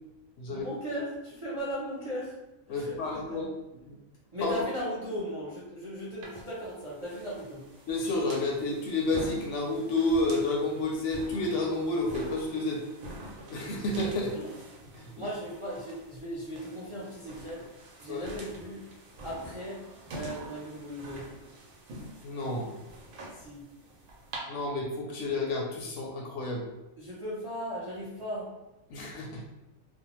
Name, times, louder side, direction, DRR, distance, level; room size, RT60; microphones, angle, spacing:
voice 1, 0.5-2.3 2.7-3.4 4.3-7.6 14.3-14.5 15.1-17.6 18.0-18.8 19.2-19.8 20.1-21.3 23.3-23.6 27.0-28.5, equal, 40° right, -8 dB, 0.4 m, -37 dB
voice 2, 2.7-3.5 3.8-4.0 4.4-4.5 7.9-12.8 13.5-14.3 15.0-15.1 18.1-18.2 22.2-22.7 24.5-26.6 28.9-29.4, left 2 dB, 70° left, 0 dB, 0.8 m, -30 dB
sound 1, 6.2-24.4, right 1 dB, 85° right, 1.1 m, -46 dB
2.6 x 2.0 x 2.9 m, 0.99 s
omnidirectional pair, 1.4 m